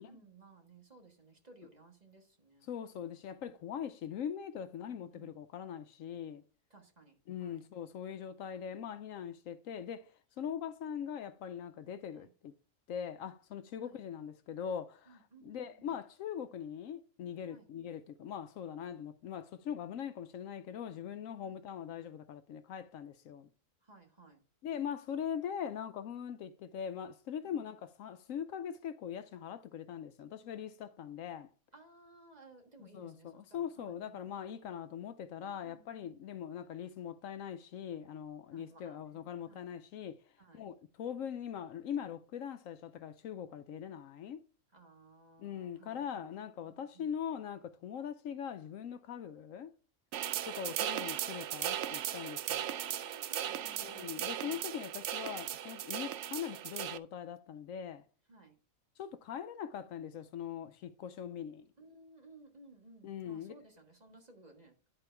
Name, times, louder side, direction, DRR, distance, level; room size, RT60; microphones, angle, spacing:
voice 1, 0.0-2.7 4.9-5.4 6.7-7.1 7.4-7.6 12.1-12.3 13.8-13.9 15.1-15.9 17.5-17.7 21.4-21.6 23.8-24.4 27.4-27.6 31.7-34.1 34.5-34.6 35.4-36.1 38.5-39.7 40.4-40.6 44.7-46.3 46.6-47.1 50.6-50.8 52.5-54.6 58.3-58.5 61.8-64.7, right 2 dB, 30° right, 1.5 m, -59 dB
voice 2, 2.6-6.4 7.3-12.5 12.9-23.5 24.6-31.5 32.8-44.4 45.4-49.7 50.4-52.7 53.8-58.0 59.0-61.7 63.0-63.5, left 8 dB, 75° left, 1.0 m, -42 dB
sound 1, 50.1-57.0, right 11 dB, 65° right, 0.8 m, -37 dB
10.5 x 4.5 x 4.5 m
omnidirectional pair, 1.5 m